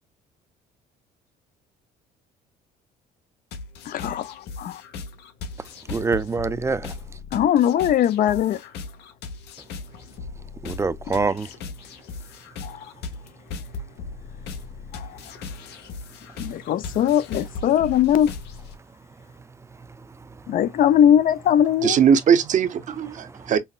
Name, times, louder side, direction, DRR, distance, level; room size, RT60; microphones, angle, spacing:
sound 1, 3.5-18.7, left 4 dB, 80° left, 0.9 m, -38 dB
voice 1, 3.9-4.8 7.3-8.6 12.6-12.9 14.9-15.2 16.4-18.3 20.5-22.0, left 10 dB, 55° left, 0.4 m, -20 dB
voice 2, 5.9-6.9 10.6-11.5 23.3-23.4, right 4 dB, 15° right, 0.4 m, -25 dB
voice 3, 21.8-23.6, right 7 dB, 50° right, 0.7 m, -19 dB
5.5 x 2.1 x 2.4 m
cardioid pair, 110°, 17 cm